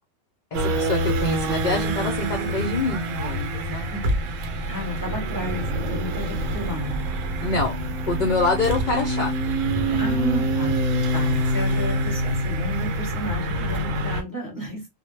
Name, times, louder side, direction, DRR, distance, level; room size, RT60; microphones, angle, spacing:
voice 1, 0.5-3.9 7.4-7.8 8.0-9.3 9.9-10.0, left 2 dB, 55° left, 0.5 m, -25 dB
sound 1, 0.5-14.2, right 1 dB, 75° right, 0.9 m, -26 dB
voice 2, 4.7-7.1 10.0-14.9, right 1 dB, 15° right, 0.9 m, -32 dB
2.2 x 2.0 x 3.1 m
omnidirectional pair, 1.4 m